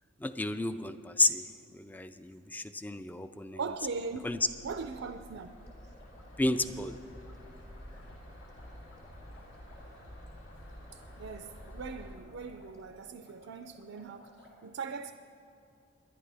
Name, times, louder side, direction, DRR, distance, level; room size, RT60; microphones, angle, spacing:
voice 1, 0.2-1.4 1.7-3.6 4.2-4.4 6.4-7.0, left 2 dB, 10° left, 0.4 m, -31 dB
voice 2, 3.5-4.3 4.6-5.5 10.9-15.1, right 5 dB, 70° right, 0.4 m, -40 dB
sound 1, 3.7-12.2, equal, 85° left, 2.5 m, -50 dB
sound 2, 4.6-14.5, left 1 dB, 55° left, 3.3 m, -59 dB
22.0 x 11.0 x 3.4 m
head